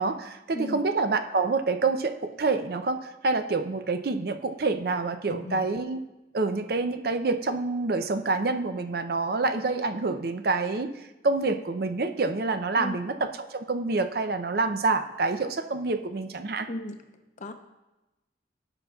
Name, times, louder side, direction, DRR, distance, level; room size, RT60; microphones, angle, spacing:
voice 1, 0.0-6.0 6.3-10.9 11.2-16.7, right 3 dB, 55° right, 8 dB, 0.5 m, -27 dB
voice 2, 0.5-0.8 5.3-5.7 12.7-13.0 16.7-17.1 17.4-17.5, left 1 dB, 40° left, 7 dB, 0.6 m, -36 dB
15.0 x 5.7 x 2.3 m, 1.0 s
head